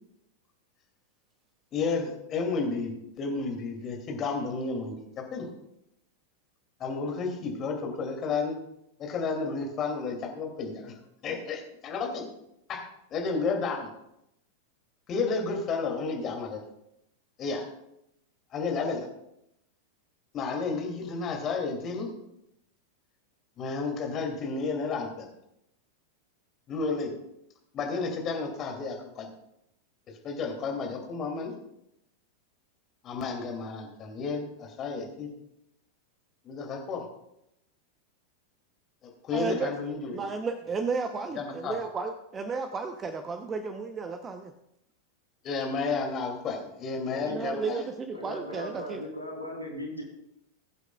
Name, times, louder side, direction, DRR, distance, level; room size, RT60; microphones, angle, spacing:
voice 1, 1.7-5.5 6.8-8.6 9.0-10.9 11.2-12.3 12.7-12.8 13.1-13.9 15.1-16.6 17.4-17.6 18.5-19.1 20.3-22.1 23.6-25.3 26.7-27.1 27.7-29.3 30.2-31.5 33.0-35.3 36.4-37.1 39.2-40.2 41.4-41.8 45.4-47.9, left 4 dB, 30° left, 2 dB, 2.6 m, -32 dB
voice 2, 39.3-39.7 40.1-44.5 47.2-49.0, right 4 dB, 20° right, 7 dB, 0.8 m, -33 dB
voice 3, 47.1-47.7 48.1-50.0, left 1 dB, 90° right, -2 dB, 3.8 m, -38 dB
21.0 x 8.1 x 2.3 m, 0.81 s
figure-of-eight pair, 90°, 0 cm